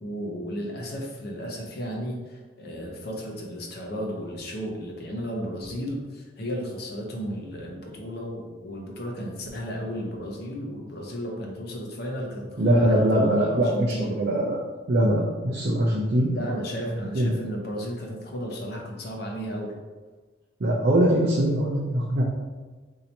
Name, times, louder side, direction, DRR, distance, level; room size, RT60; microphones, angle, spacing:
voice 1, 0.0-14.2 16.3-19.7, equal, 55° left, -1 dB, 0.7 m, -34 dB
voice 2, 12.6-14.6 14.9-16.6 17.0-17.3 20.6-22.2, right 1 dB, 55° right, -4 dB, 0.5 m, -22 dB
2.8 x 2.7 x 4.4 m, 1.3 s
head